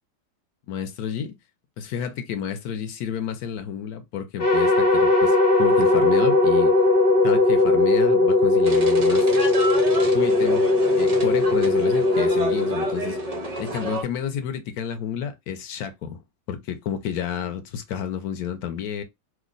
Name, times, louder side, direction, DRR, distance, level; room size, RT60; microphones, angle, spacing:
voice 1, 0.7-1.4 1.8-6.8 7.2-9.3 10.1-10.7 11.0-13.2 13.6-16.2 16.5-19.0, left 8 dB, 70° left, 1.1 m, -31 dB
sound 1, 4.4-13.7, left 2 dB, 45° left, 0.9 m, -19 dB
sound 2, 8.6-14.0, right 2 dB, 70° right, 0.3 m, -32 dB
3.1 x 2.0 x 3.8 m
omnidirectional pair, 1.8 m